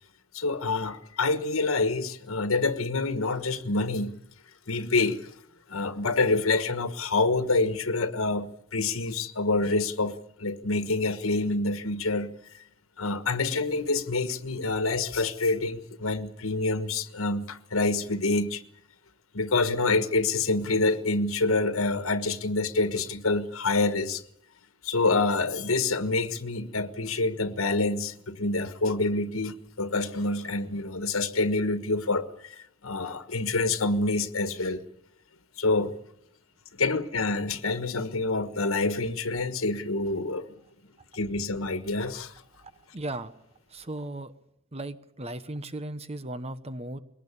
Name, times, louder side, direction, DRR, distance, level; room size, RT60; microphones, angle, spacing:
voice 1, 0.3-4.2 4.7-5.2 5.7-12.3 13.0-18.6 19.3-24.2 24.8-32.5 32.8-34.8 35.6-35.9 36.8-40.5 41.1-42.3, left 3 dB, 80° left, 1.4 m, -27 dB
voice 2, 42.6-43.3 43.7-44.3 44.7-47.0, right 1 dB, 30° right, 1.1 m, -36 dB
22.0 x 19.0 x 8.6 m
head